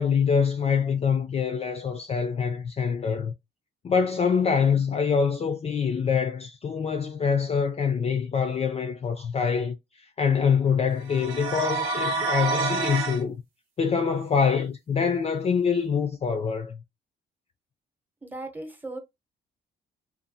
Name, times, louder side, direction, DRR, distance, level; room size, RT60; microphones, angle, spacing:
voice 1, 0.0-3.3 3.8-13.4 13.8-16.8, left 6 dB, 30° left, 0.4 m, -25 dB
sound 1, 11.0-13.2, right 4 dB, 90° right, 1.0 m, -28 dB
voice 2, 18.2-19.0, right 2 dB, 10° right, 0.8 m, -37 dB
2.6 x 2.3 x 2.6 m
cardioid pair, 90°, 20 cm